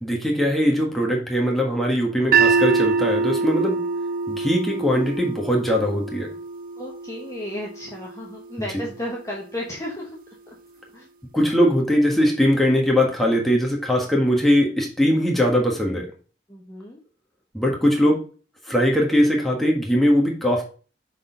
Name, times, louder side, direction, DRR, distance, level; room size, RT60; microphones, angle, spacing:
voice 1, 0.0-3.8 4.3-6.3 11.3-16.1 17.5-18.2 18.7-20.6, equal, ahead, -2 dB, 1.5 m, -20 dB
sound 1, 2.3-8.5, right 4 dB, 50° right, 0.5 m, -24 dB
voice 2, 6.8-10.2 10.5-10.6 10.9-11.1 16.5-17.0 17.6-17.7, left 1 dB, 15° left, -3 dB, 1.2 m, -34 dB
6.5 x 4.2 x 3.8 m, 0.38 s
head